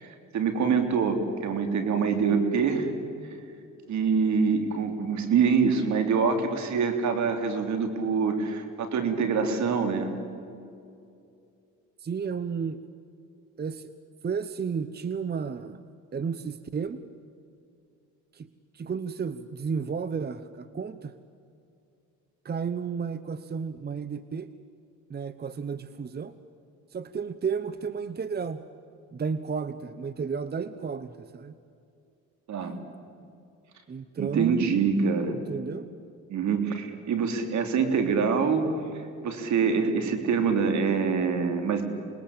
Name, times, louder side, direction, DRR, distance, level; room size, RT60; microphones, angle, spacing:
voice 1, 0.3-2.9 3.9-10.1 32.5-32.8 34.2-35.4 36.3-38.7 39.2-41.8, right 5 dB, 70° right, 6 dB, 3.5 m, -25 dB
voice 2, 12.0-12.8 13.6-13.9 14.2-15.8 16.1-17.0 18.3-21.1 22.4-24.5 25.1-26.3 26.9-28.6 29.1-31.6 33.9-34.7 35.3-35.9, right 6 dB, 35° right, 13 dB, 0.9 m, -32 dB
27.0 x 20.5 x 8.7 m, 2.5 s
cardioid pair, 95°, 30 cm